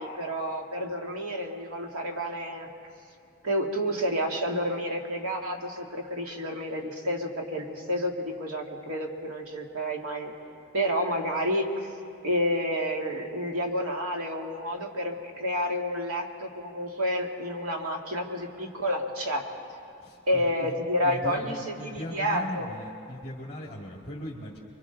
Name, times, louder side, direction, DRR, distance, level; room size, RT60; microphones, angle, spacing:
voice 1, 0.0-2.7 3.4-10.3 10.7-11.9 12.2-19.4 20.3-22.7, equal, 85° right, 1 dB, 2.0 m, -30 dB
voice 2, 20.0-20.8 21.0-24.6, left 1 dB, 30° left, -5 dB, 2.2 m, -39 dB
29.5 x 23.5 x 3.9 m, 2.5 s
head